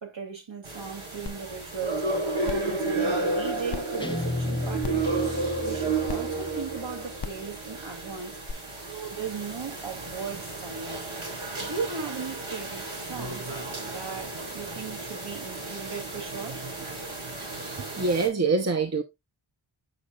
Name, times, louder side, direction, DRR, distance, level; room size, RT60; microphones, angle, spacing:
voice 1, 0.0-2.1 2.4-5.0 5.6-8.3 8.9-11.0 11.6-13.5 13.8-16.6, right 6 dB, 60° right, 2.4 m, -37 dB
sound 1, 0.6-18.3, right 3 dB, 80° right, 3.6 m, -32 dB
sound 2, 1.3-1.4 1.8-1.9 2.4-2.7 3.7-3.8 4.8-5.1 6.1-6.2 7.2-7.4 8.5-8.6, left 6 dB, 55° left, 0.7 m, -35 dB
Guitar, 4.0-7.2, left 1 dB, 10° left, 0.8 m, -34 dB
voice 2, 17.6-19.0, right 4 dB, 30° right, 0.9 m, -25 dB
8.4 x 6.4 x 2.4 m
wide cardioid pair, 50°, 49 cm